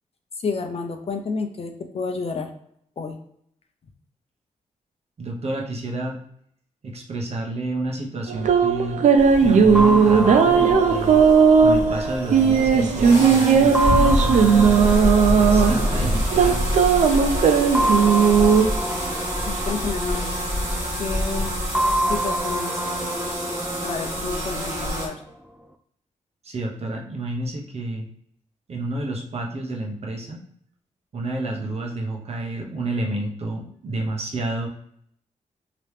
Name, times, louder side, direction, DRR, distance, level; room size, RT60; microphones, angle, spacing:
voice 1, 0.4-2.5 3.0-3.2 19.4-20.4 21.0-21.6 22.1-22.7 23.8-25.2, left 4 dB, 45° left, 4 dB, 0.6 m, -30 dB
voice 2, 5.2-6.2 6.8-9.0 9.4-11.2 11.6-14.7 15.3-16.7 26.4-28.1 28.7-30.4 31.1-34.7, right 2 dB, 50° right, 0 dB, 0.9 m, -30 dB
sound 1, 8.3-18.6, right 6 dB, 65° right, 0.5 m, -17 dB
sound 2, 9.2-25.1, equal, 20° right, 1.4 m, -26 dB
sound 3, 9.7-13.1 13.7-16.7 17.7-20.9 21.7-24.9, right 1 dB, 5° right, 0.3 m, -28 dB
3.0 x 2.9 x 3.3 m, 0.68 s
cardioid pair, 95°, 14 cm